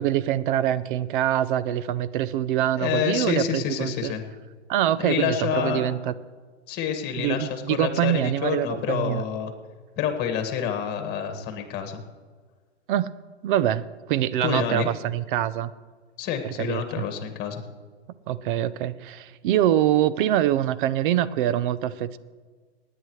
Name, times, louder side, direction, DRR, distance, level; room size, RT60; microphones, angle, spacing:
voice 1, 0.0-4.1 4.7-6.1 7.2-9.2 12.9-13.2 13.4-15.7 16.6-17.0 18.3-22.2, right 12 dB, 50° right, 16 dB, 0.7 m, -24 dB
voice 2, 2.8-4.2 5.0-5.8 6.7-9.5 10.0-12.0 14.4-14.9 16.2-17.6, left 8 dB, 30° left, 6 dB, 1.9 m, -28 dB
27.5 x 9.9 x 3.2 m, 1.5 s
hypercardioid pair, 135°, 34 cm